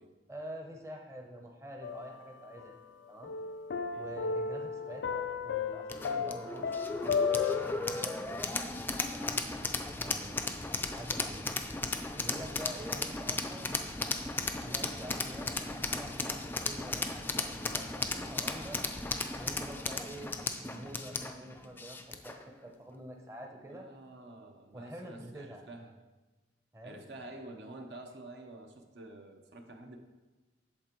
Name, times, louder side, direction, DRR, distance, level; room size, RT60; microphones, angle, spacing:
voice 1, 0.3-2.7 3.1-3.3 3.9-9.4 9.9-10.6 10.9-11.4 12.2-13.7 14.6-18.8 19.4-23.9 24.7-25.6 26.7-27.1, right 1 dB, 15° right, 2 dB, 0.7 m, -47 dB
sound 1, 1.8-2.9 3.2-7.7, left 6 dB, 85° left, 0.4 m, -34 dB
sound 2, 5.9-22.4, left 3 dB, 10° left, 0.3 m, -36 dB
voice 2, 23.6-26.0 26.8-30.0, right 2 dB, 70° right, 4 dB, 0.8 m, -49 dB
8.6 x 6.7 x 3.0 m, 1.2 s
head